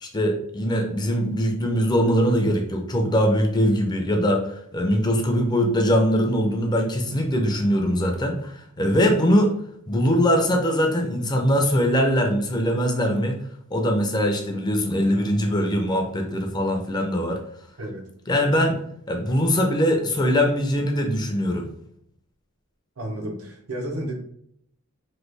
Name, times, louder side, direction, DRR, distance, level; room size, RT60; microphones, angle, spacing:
voice 1, 0.0-9.5 9.9-13.4 13.7-17.4 18.3-18.8 19.1-21.7, equal, 20° left, 2 dB, 0.4 m, -22 dB
voice 2, 17.8-18.1 23.0-24.1, right 1 dB, 85° right, 2 dB, 0.7 m, -32 dB
3.1 x 2.2 x 3.2 m, 0.67 s
head